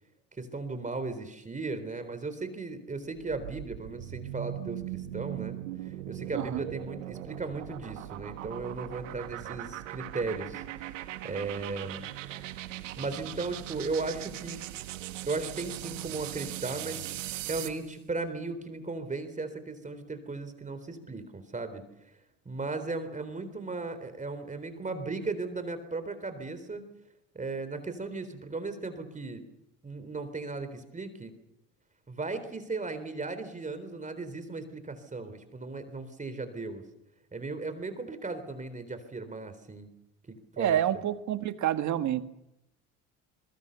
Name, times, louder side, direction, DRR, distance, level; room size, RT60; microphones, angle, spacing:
voice 1, 0.4-12.1 13.0-14.6 15.3-22.1 22.5-26.8 27.3-29.4 29.8-31.3 32.1-36.8 37.3-39.9 40.3-40.8, right 3 dB, 20° right, 10 dB, 3.8 m, -36 dB
sound 1, 3.1-17.8, right 14 dB, 85° right, 1.6 m, -40 dB
voice 2, 6.3-6.7 40.6-42.2, right 11 dB, 50° right, 9 dB, 1.9 m, -28 dB
26.0 x 22.5 x 7.0 m, 0.85 s
hypercardioid pair, 75°, 37 cm